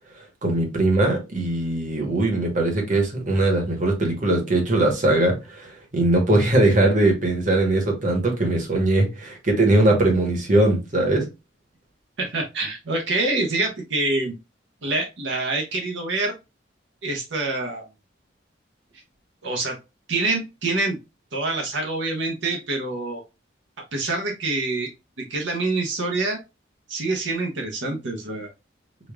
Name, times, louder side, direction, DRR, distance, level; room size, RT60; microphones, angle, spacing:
voice 1, 0.4-11.3, right 2 dB, 40° right, 1.1 m, -20 dB
voice 2, 12.2-14.3 14.8-16.3 17.0-17.8 19.4-19.8 20.1-21.0 21.3-23.2 23.9-24.9 25.2-26.4 26.9-28.5, right 2 dB, 75° right, 0.8 m, -26 dB
5.0 x 2.3 x 2.3 m
head